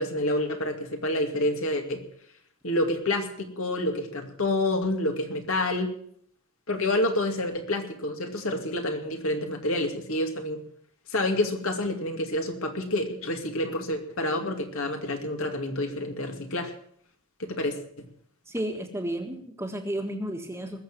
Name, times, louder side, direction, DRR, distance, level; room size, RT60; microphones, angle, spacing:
voice 1, 0.0-2.0 2.6-5.9 6.7-10.6 11.1-16.7 17.4-18.0, left 1 dB, 65° left, 4 dB, 2.3 m, -28 dB
voice 2, 18.5-20.8, right 1 dB, 10° right, 4 dB, 1.6 m, -32 dB
20.5 x 7.2 x 7.5 m, 0.64 s
head